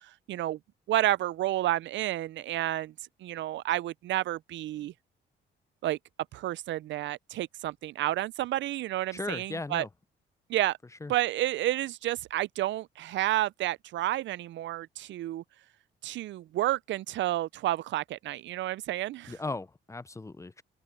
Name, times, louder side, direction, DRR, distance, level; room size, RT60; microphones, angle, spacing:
voice 1, 0.0-0.6 0.9-2.9 3.2-4.9 5.8-6.0 6.3-9.9 10.5-10.8 11.1-15.4 16.0-19.3, right 14 dB, 70° right, 0.4 m, -30 dB
voice 2, 9.1-9.9 11.0-11.1 19.3-20.6, left 3 dB, 15° left, 0.5 m, -37 dB
open air
cardioid pair, 90°, 20 cm